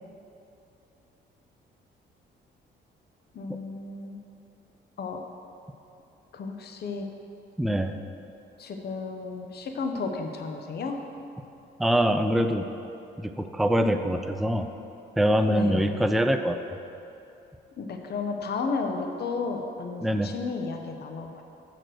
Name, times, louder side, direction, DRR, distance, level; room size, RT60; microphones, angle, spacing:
voice 1, 3.3-4.2 5.0-5.2 6.3-7.1 8.6-11.0 15.4-15.9 17.8-21.4, left 4 dB, 55° left, 4 dB, 0.9 m, -33 dB
voice 2, 7.6-8.0 11.8-12.7 13.2-14.7 15.2-16.8 20.0-20.3, equal, ahead, 7 dB, 0.4 m, -24 dB
6.9 x 5.9 x 6.3 m, 2.8 s
cardioid pair, 90°, 20 cm